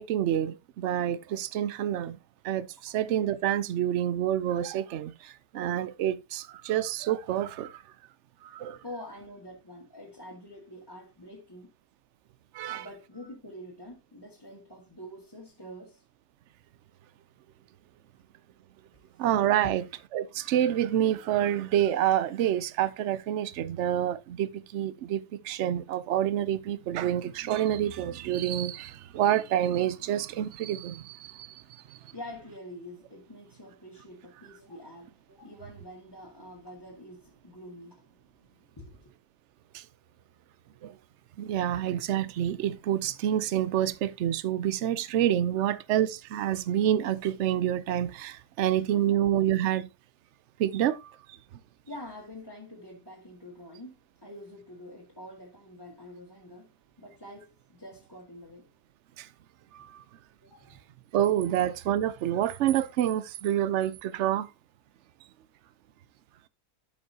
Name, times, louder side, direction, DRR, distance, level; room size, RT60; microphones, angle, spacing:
voice 1, 0.0-2.2 2.4-7.8 8.4-8.8 12.5-12.8 19.2-19.8 20.1-31.6 31.9-32.0 39.7-39.8 40.8-41.0 41.4-49.9 50.6-51.4 59.2-59.3 59.7-60.0 61.1-64.5, right 11 dB, 65° right, 0.8 m, -28 dB
voice 2, 8.8-11.7 12.7-16.0 19.6-19.8 32.1-39.1 48.7-48.8 49.1-49.2 51.9-58.7 59.8-59.9 60.4-60.9, left 1 dB, 15° left, 1.8 m, -46 dB
12.5 x 5.4 x 2.8 m
omnidirectional pair, 1.7 m